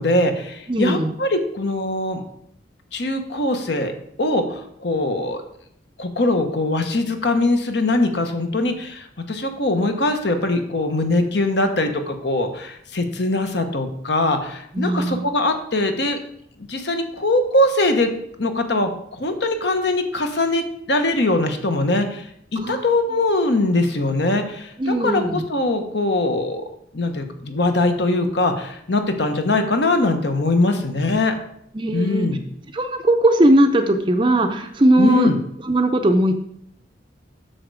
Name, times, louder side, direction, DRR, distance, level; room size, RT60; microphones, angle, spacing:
voice 1, 0.0-2.2 2.9-3.9 4.2-5.4 6.0-16.2 16.7-18.1 18.4-26.6 26.9-31.3 31.9-32.4 35.0-35.4, left 2 dB, 65° left, 6 dB, 1.2 m, -21 dB
voice 2, 0.7-1.1 14.7-15.3 22.6-22.8 24.8-25.4 31.7-32.3 32.7-35.3 35.6-36.3, right 1 dB, 25° right, 5 dB, 0.6 m, -18 dB
8.7 x 6.4 x 4.8 m, 0.72 s
head